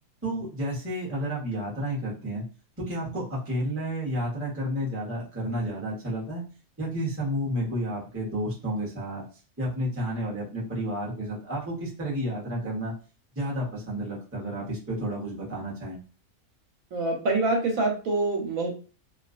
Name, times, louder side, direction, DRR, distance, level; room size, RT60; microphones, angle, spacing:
voice 1, 0.2-2.5 2.8-6.4 6.8-9.2 9.6-12.9 13.3-16.0, equal, 10° right, -5 dB, 0.7 m, -31 dB
voice 2, 16.9-18.7, right 2 dB, 70° right, 1 dB, 1.1 m, -25 dB
2.5 x 2.3 x 2.4 m, 0.37 s
omnidirectional pair, 1.5 m